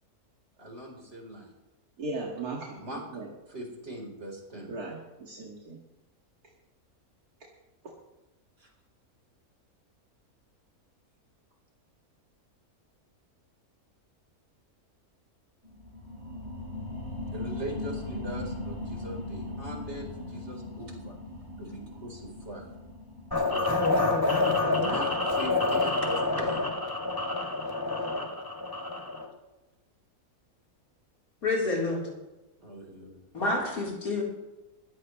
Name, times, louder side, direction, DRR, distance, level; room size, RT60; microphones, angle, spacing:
voice 1, 0.6-1.5 2.7-3.0 3.5-4.8 8.6-8.7 17.3-21.2 21.6-22.7 23.4-24.0 24.7-26.6 32.6-33.2, right 1 dB, 45° right, 0 dB, 4.4 m, -41 dB
voice 2, 2.0-2.7 3.1-3.3 4.7-5.8, right 3 dB, 90° right, -3 dB, 2.6 m, -36 dB
sound 1, 15.6-26.8 27.2-27.3, left 2 dB, 45° left, 4.9 m, -40 dB
sound 2, 23.3-29.3, left 2 dB, 15° left, 2.4 m, -27 dB
voice 3, 31.4-32.1 33.3-34.2, left 2 dB, 75° left, -4 dB, 4.5 m, -28 dB
21.5 x 15.5 x 3.2 m, 1.0 s
omnidirectional pair, 1.6 m